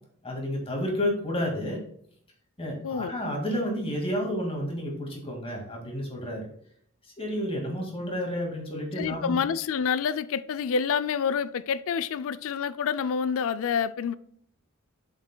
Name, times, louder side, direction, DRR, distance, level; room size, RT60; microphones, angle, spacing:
voice 1, 0.2-1.8 2.6-6.5 7.2-9.4, equal, 25° left, 2.0 m, -30 dB
voice 2, 9.0-14.1, left 6 dB, 65° left, 0.4 m, -28 dB
7.6 x 7.3 x 2.2 m
head